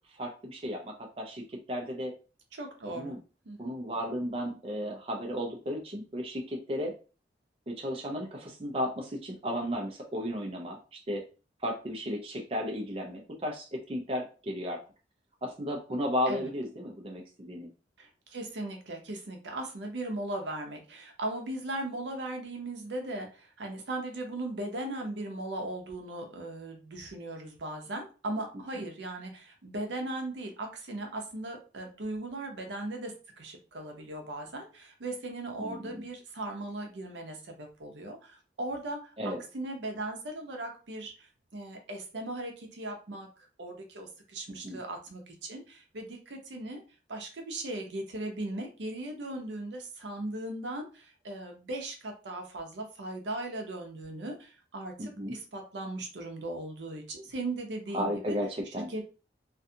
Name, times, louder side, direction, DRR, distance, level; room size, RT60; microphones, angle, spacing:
voice 1, 0.2-2.1 2.9-3.2 3.6-6.9 7.7-11.2 11.6-14.8 15.4-17.7 35.6-36.0 39.2-39.4 44.6-44.8 55.0-55.3 57.9-58.9, equal, 30° right, 1 dB, 0.4 m, -34 dB
voice 2, 2.5-3.2 3.5-3.7 16.3-16.5 18.0-46.8 47.1-58.4 58.9-59.1, right 2 dB, 75° right, 3 dB, 0.6 m, -38 dB
2.5 x 2.3 x 2.7 m, 0.35 s
head